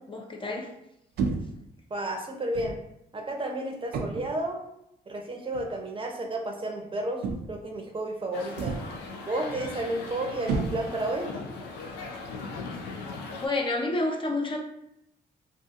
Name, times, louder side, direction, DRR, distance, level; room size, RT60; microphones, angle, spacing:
voice 1, 0.1-0.7 13.4-14.6, left 2 dB, 30° left, 1 dB, 0.5 m, -29 dB
sound 1, 1.2-1.7 2.5-2.9 3.9-4.4 5.5-5.7 7.2-7.7 8.6-9.1 10.5-11.2, right 4 dB, 75° right, 0.4 m, -31 dB
voice 2, 1.9-2.8 3.1-4.6 5.1-8.8 9.2-11.3, right 1 dB, 30° right, 2 dB, 0.6 m, -32 dB
sound 2, 8.3-13.5, left 3 dB, 90° left, 0.4 m, -39 dB
2.6 x 2.4 x 2.4 m, 0.81 s
supercardioid pair, 60°, 17 cm